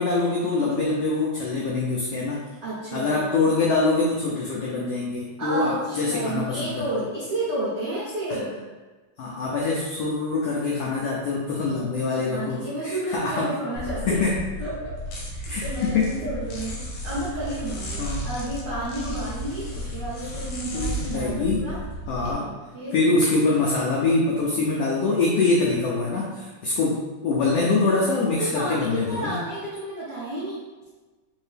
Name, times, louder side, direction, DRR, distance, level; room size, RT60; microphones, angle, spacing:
voice 1, 0.0-2.5 2.9-6.8 8.3-8.4 9.2-13.5 14.1-14.3 15.5-16.1 18.0-18.3 20.7-21.7 22.1-22.5 22.9-29.4, left 3 dB, 85° left, -4 dB, 1.3 m, -24 dB
voice 2, 2.6-3.1 5.4-8.6 12.3-14.2 14.6-21.8 22.4-22.9 28.4-30.6, right 1 dB, 85° right, -9 dB, 0.9 m, -31 dB
sound 1, 13.8-22.3, equal, 70° left, 1.6 m, -33 dB
4.4 x 2.7 x 3.3 m, 1.3 s
omnidirectional pair, 3.4 m